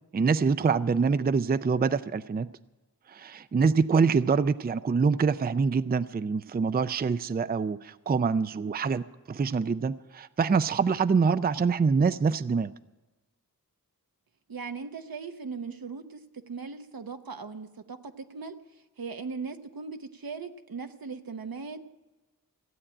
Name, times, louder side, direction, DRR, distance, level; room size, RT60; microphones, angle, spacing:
voice 1, 0.1-2.5 3.1-12.7, right 5 dB, 30° right, 14 dB, 0.4 m, -25 dB
voice 2, 14.5-16.2 16.5-18.5 19.0-21.8, right 5 dB, 80° right, 7 dB, 1.0 m, -38 dB
15.5 x 8.6 x 8.8 m, 1.1 s
wide cardioid pair, 85°, 35 cm